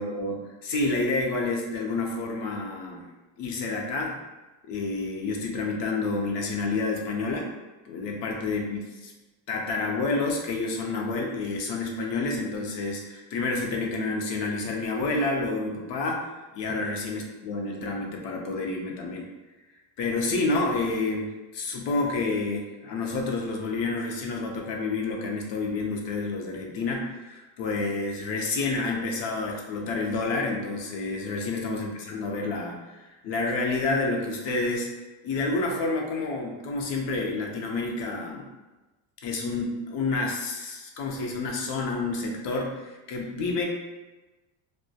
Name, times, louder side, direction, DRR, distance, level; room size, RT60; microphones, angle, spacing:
voice 1, 0.0-3.1 3.4-4.2 4.7-7.5 7.8-8.8 9.5-16.3 16.5-19.3 20.0-34.9 35.2-38.5 39.2-43.6, left 3 dB, 65° left, 0 dB, 0.6 m, -29 dB
2.2 x 2.1 x 2.6 m, 1.1 s
cardioid pair, 115°, 46 cm